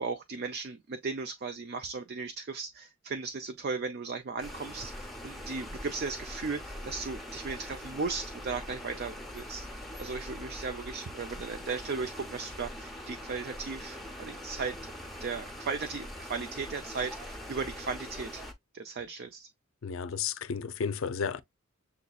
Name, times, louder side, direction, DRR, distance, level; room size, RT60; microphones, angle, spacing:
voice 1, 0.0-14.9 15.2-18.4 18.7-19.5, right 4 dB, 50° right, 0.5 m, -36 dB
sound 1, 4.4-18.5, equal, ahead, 0.7 m, -42 dB
voice 2, 19.8-21.4, left 6 dB, 65° left, 0.5 m, -32 dB
6.9 x 2.7 x 2.3 m
head